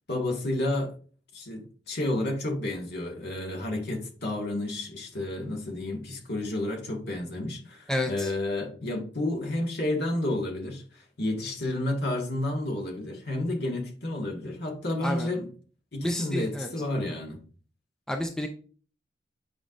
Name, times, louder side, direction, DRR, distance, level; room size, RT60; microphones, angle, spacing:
voice 1, 0.1-0.9 1.3-15.5 15.9-17.4, left 1 dB, 60° left, 1.8 m, -31 dB
voice 2, 7.9-8.3 15.0-15.3 16.0-16.7 18.1-18.5, left 1 dB, 5° left, 0.5 m, -30 dB
8.2 x 4.8 x 2.5 m
head